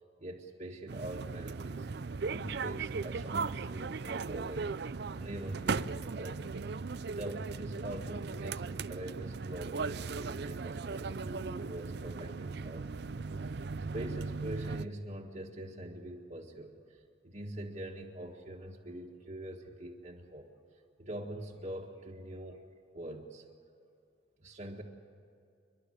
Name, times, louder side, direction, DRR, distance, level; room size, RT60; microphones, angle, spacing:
voice 1, 0.2-1.9 2.3-6.4 6.9-13.7 13.9-20.5 21.0-22.6 22.9-23.4 24.4-24.8, right 1 dB, 40° right, -3 dB, 1.7 m, -44 dB
sound 1, 0.9-14.9, right 4 dB, 60° right, 0.5 m, -37 dB
29.5 x 12.0 x 9.9 m, 2.5 s
head